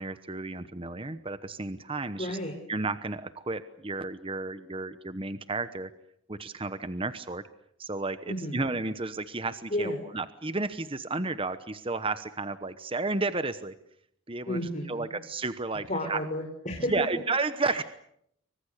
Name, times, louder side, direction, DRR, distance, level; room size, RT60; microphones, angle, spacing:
voice 1, 0.0-2.4 2.7-5.9 6.3-7.4 7.8-13.7 14.3-14.6 14.9-16.2 16.9-17.8, right 3 dB, 25° right, 12 dB, 1.0 m, -32 dB
voice 2, 2.2-2.5 8.3-8.6 9.7-10.0 14.5-15.1 15.9-16.9 17.6-17.8, left 1 dB, 35° left, 2 dB, 4.5 m, -32 dB
28.5 x 25.0 x 6.7 m, 0.71 s
head